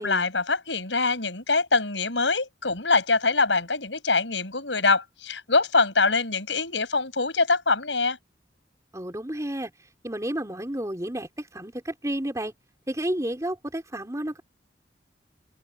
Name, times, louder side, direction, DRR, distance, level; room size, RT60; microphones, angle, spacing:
voice 1, 0.0-8.2, left 3 dB, 85° left, 7.8 m, -24 dB
voice 2, 8.9-9.7 10.0-12.5 12.9-14.4, right 1 dB, 15° right, 4.2 m, -31 dB
head